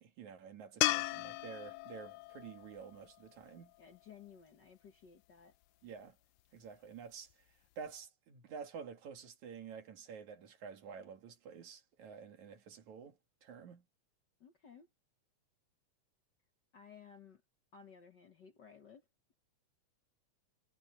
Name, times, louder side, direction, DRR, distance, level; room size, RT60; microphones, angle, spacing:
voice 1, 0.0-3.7 5.8-6.2 6.5-7.3 7.8-13.9, right 6 dB, 75° right, 3.4 m, -50 dB
sound 1, 0.8-4.0 7.3-7.4, left 18 dB, 85° left, 2.0 m, -37 dB
voice 2, 3.8-5.5 14.4-14.9 16.7-17.4 17.7-19.1, left 7 dB, 50° left, 1.5 m, -57 dB
omnidirectional pair, 3.3 m